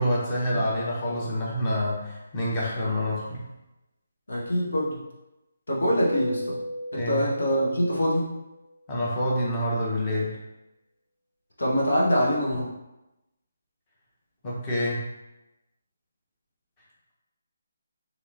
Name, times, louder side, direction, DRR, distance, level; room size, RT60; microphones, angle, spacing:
voice 1, 0.0-3.4 6.9-7.3 8.9-10.3 14.4-15.0, equal, 25° left, -6 dB, 1.0 m, -27 dB
voice 2, 4.3-5.0 5.7-6.6 6.9-8.3 11.6-12.7, equal, 70° left, -4 dB, 1.0 m, -24 dB
Keyboard (musical), 6.0-8.6, equal, 90° right, 0.4 m, -36 dB
2.9 x 2.9 x 2.6 m, 0.95 s
figure-of-eight pair, 150°, 0 cm